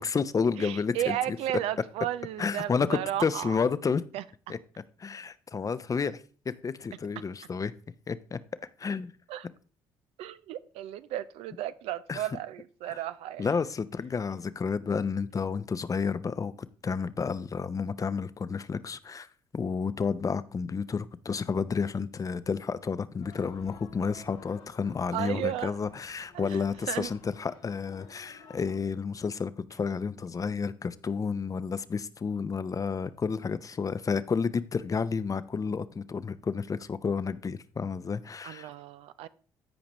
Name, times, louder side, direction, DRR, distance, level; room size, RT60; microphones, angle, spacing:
voice 1, 0.0-1.4 2.4-4.0 4.5-4.6 5.0-7.7 8.1-8.4 8.8-9.1 12.1-12.2 12.9-13.0 13.4-19.3 19.5-38.7, left 5 dB, 35° left, 0.6 m, -31 dB
voice 2, 0.6-3.6 4.1-4.5 9.3-9.5 10.2-13.5 25.1-25.7 26.3-27.1 38.4-39.3, right 12 dB, 70° right, 0.4 m, -34 dB
sound 1, 23.2-28.8, left 5 dB, 85° left, 2.0 m, -53 dB
14.0 x 5.0 x 3.0 m
hypercardioid pair, 60°, 10 cm